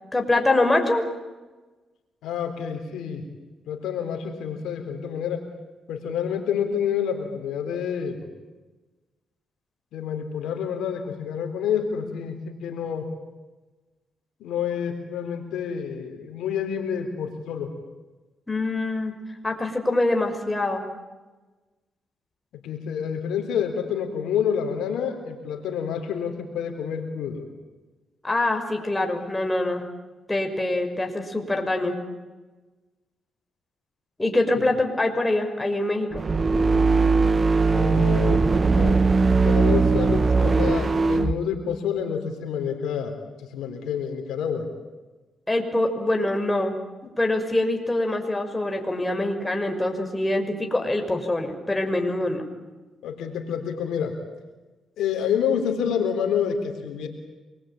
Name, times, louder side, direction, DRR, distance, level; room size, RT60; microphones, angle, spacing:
voice 1, 0.1-1.0 18.5-19.1 19.4-20.9 28.2-29.8 30.3-31.9 34.2-36.2 45.5-46.8 47.2-52.4, left 2 dB, 15° left, 4 dB, 5.7 m, -24 dB
voice 2, 2.2-3.2 3.7-5.4 5.9-8.3 9.9-13.1 14.4-17.7 22.6-27.5 34.5-34.6 37.7-38.5 38.8-39.0 39.3-44.7 53.0-54.2 55.0-57.1, left 7 dB, 85° left, 5 dB, 3.7 m, -28 dB
sound 1, 36.1-41.4, right 4 dB, 35° right, 1.5 m, -20 dB
26.5 x 22.0 x 9.0 m, 1.2 s
cardioid pair, 65°, 0 cm